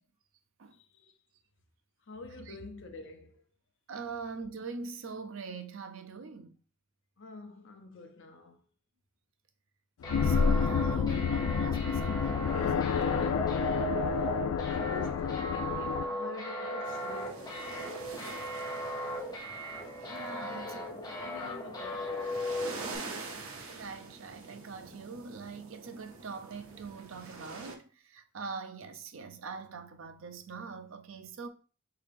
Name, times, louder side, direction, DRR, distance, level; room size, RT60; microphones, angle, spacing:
voice 1, 0.7-1.1 2.1-3.4 7.2-8.6 14.0-18.4 20.4-22.5, left 2 dB, 60° left, 0.7 m, -48 dB
voice 2, 3.9-6.5 10.2-13.2 20.0-20.8 23.7-31.5, right 4 dB, 65° right, 0.5 m, -43 dB
sound 1, 10.0-16.0, left 7 dB, 85° left, 0.3 m, -29 dB
sound 2, 10.0-23.0, right 1 dB, 20° left, 0.8 m, -37 dB
sound 3, 16.8-27.8, right 3 dB, 85° right, 0.9 m, -46 dB
4.8 x 2.8 x 3.4 m
head